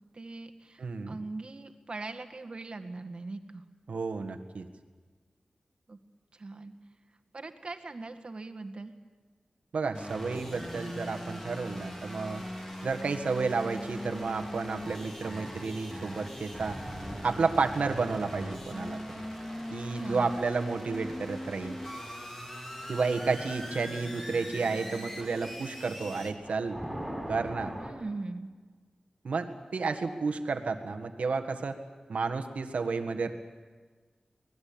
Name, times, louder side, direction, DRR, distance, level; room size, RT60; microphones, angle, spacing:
voice 1, 0.0-3.6 5.9-6.0 6.3-6.7 7.3-8.9 19.9-20.4 27.8-28.5, right 3 dB, 50° right, 7 dB, 2.0 m, -41 dB
voice 2, 0.8-1.2 3.9-4.7 9.7-12.4 12.8-16.8 17.2-19.0 19.7-21.8 22.9-26.8 27.3-27.7 29.2-31.8 32.1-33.3, right 4 dB, 85° right, 6 dB, 1.7 m, -31 dB
sound 1, 9.9-26.3, equal, 15° left, 3.9 m, -40 dB
sound 2, 10.3-22.8 23.1-23.4 24.9-27.9, equal, 5° right, 7.9 m, -46 dB
25.0 x 18.5 x 8.8 m, 1.4 s
wide cardioid pair, 65°, 2 cm